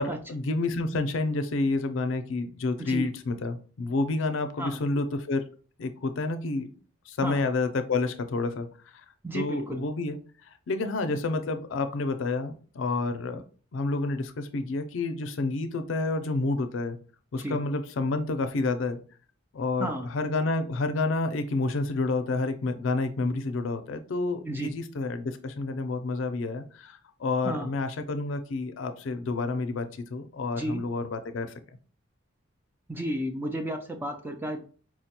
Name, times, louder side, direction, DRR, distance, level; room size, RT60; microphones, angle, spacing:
voice 1, 0.0-5.5 5.8-6.7 7.1-8.7 9.3-10.2 10.7-13.4 13.7-17.0 17.3-19.0 19.5-31.5, left 3 dB, 70° left, 8 dB, 0.4 m, -29 dB
voice 2, 2.8-3.1 4.6-4.8 7.2-7.5 9.2-9.8 17.4-17.6 19.8-20.1 24.4-24.7 27.4-27.7 30.5-30.8 32.9-34.6, right 1 dB, 10° right, 4 dB, 0.3 m, -33 dB
4.5 x 2.2 x 2.8 m, 0.41 s
head